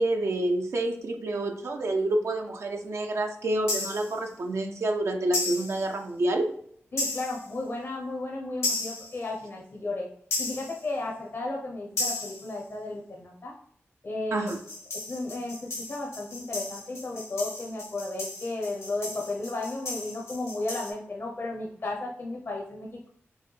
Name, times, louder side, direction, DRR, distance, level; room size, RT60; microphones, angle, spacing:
voice 1, 0.0-6.5 14.3-14.6, right 1 dB, 75° right, 3 dB, 0.4 m, -28 dB
sound 1, 3.7-4.1 5.3-5.8 7.0-7.5 8.6-9.2 10.3-10.8 12.0-12.5 14.5-20.9, left 2 dB, 85° left, 1.1 m, -34 dB
voice 2, 6.9-10.1 10.4-13.5 14.0-14.5 14.9-23.1, left 2 dB, 55° left, 0 dB, 0.6 m, -34 dB
4.6 x 2.2 x 3.1 m, 0.63 s
wide cardioid pair, 65°, 5 cm